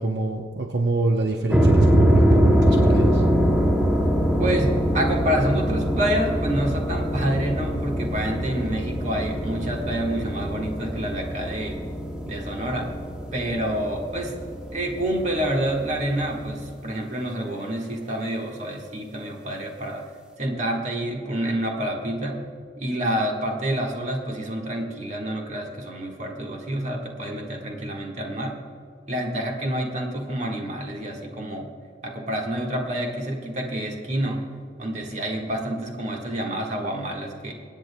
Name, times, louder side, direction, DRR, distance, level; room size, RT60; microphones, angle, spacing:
voice 1, 0.0-3.2, right 2 dB, 65° right, 2 dB, 0.7 m, -26 dB
Creepy Piano Rumble, 1.5-16.7, equal, 5° right, 0.7 m, -23 dB
voice 2, 4.4-11.9 12.2-12.9 13.3-14.3 14.7-20.0 20.4-22.4 22.8-28.6 29.1-31.7 32.0-34.5 34.8-37.5, right 1 dB, 40° right, 1 dB, 1.4 m, -28 dB
24.5 x 9.0 x 2.2 m, 2.2 s
head